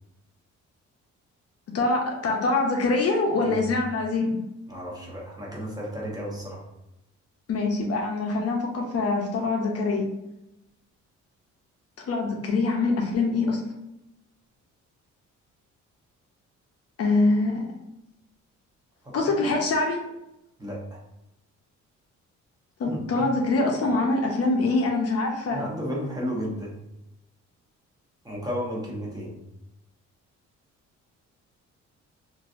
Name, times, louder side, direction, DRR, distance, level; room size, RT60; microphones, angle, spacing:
voice 1, 1.7-4.4 7.5-10.1 12.1-13.6 17.0-17.6 19.1-20.0 22.8-25.6, left 3 dB, 55° left, 1 dB, 0.6 m, -24 dB
voice 2, 4.7-6.6 19.0-19.5 20.6-21.0 22.9-23.3 25.5-26.8 28.2-29.3, equal, 15° right, -4 dB, 1.0 m, -33 dB
3.1 x 2.6 x 2.5 m, 0.87 s
cardioid pair, 90°, 30 cm